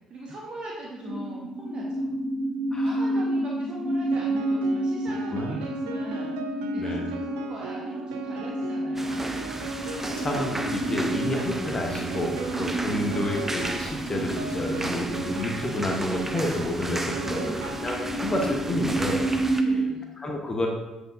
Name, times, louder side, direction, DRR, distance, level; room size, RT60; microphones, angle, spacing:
voice 1, 0.1-2.2 2.8-9.6 11.1-11.2 12.8-13.2 17.1-17.8 19.6-20.2, right 2 dB, 45° right, -4 dB, 1.0 m, -41 dB
sound 1, 1.0-19.9, right 1 dB, 75° left, 2.0 m, -30 dB
Piano, 4.1-18.5, right 5 dB, 70° right, 0.4 m, -38 dB
voice 2, 6.8-7.1 9.7-9.9 10.2-17.4 17.8-19.7 20.2-20.7, left 1 dB, 30° left, 1 dB, 1.0 m, -30 dB
sound 2, 9.0-19.6, right 2 dB, 15° right, 0.6 m, -35 dB
7.6 x 4.9 x 2.6 m, 1.0 s
figure-of-eight pair, 45°, 2 cm